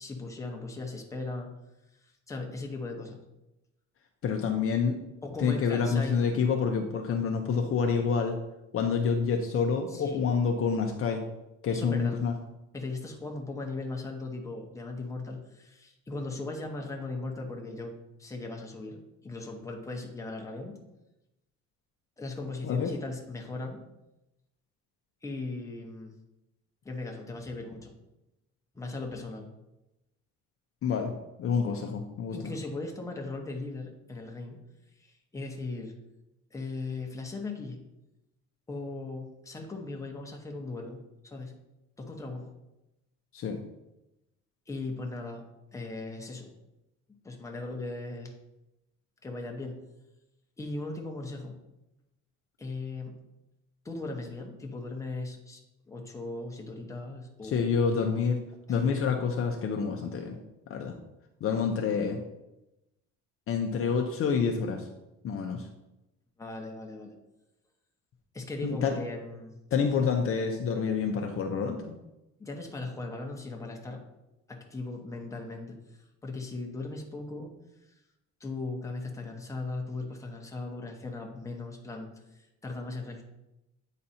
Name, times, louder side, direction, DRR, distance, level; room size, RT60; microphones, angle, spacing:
voice 1, 0.0-1.5 2.0-3.2 5.2-6.3 9.9-10.2 11.7-12.2 12.7-20.8 22.2-23.8 25.2-26.1 26.8-27.9 28.7-29.5 32.3-34.6 35.0-35.9 36.5-37.8 38.7-41.5 42.0-42.5 44.7-45.5 45.7-46.5 47.2-48.3 49.2-49.8 50.6-51.6 52.6-53.2 53.8-55.6 55.9-57.7 58.7-58.8 66.4-67.1 68.3-69.5 70.0-70.2 72.4-74.0 74.5-75.8 76.2-77.5 78.4-83.2, left 2 dB, 10° left, 1 dB, 1.0 m, -38 dB
voice 2, 4.2-5.0 5.4-8.4 8.7-11.2 11.6-12.3 22.6-22.9 30.8-31.1 31.4-32.4 43.3-43.6 57.4-58.4 58.7-60.4 60.7-61.0 61.4-62.2 63.5-64.9 65.2-65.6 68.6-68.9 69.7-72.0, left 6 dB, 45° left, 3 dB, 0.7 m, -28 dB
8.8 x 4.2 x 4.2 m, 0.93 s
cardioid pair, 155°, 32 cm